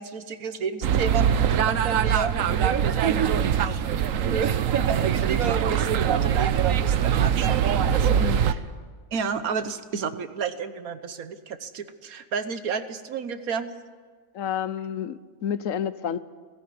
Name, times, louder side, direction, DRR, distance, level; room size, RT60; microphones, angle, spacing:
voice 1, 0.0-8.6 9.1-13.8, right 6 dB, 85° right, 11 dB, 1.6 m, -31 dB
sound 1, 0.8-8.5, right 8 dB, 70° right, 1.2 m, -23 dB
voice 2, 8.1-8.5 14.3-16.2, left 8 dB, 70° left, 15 dB, 1.1 m, -30 dB
17.5 x 16.0 x 9.6 m, 1.5 s
omnidirectional pair, 1.5 m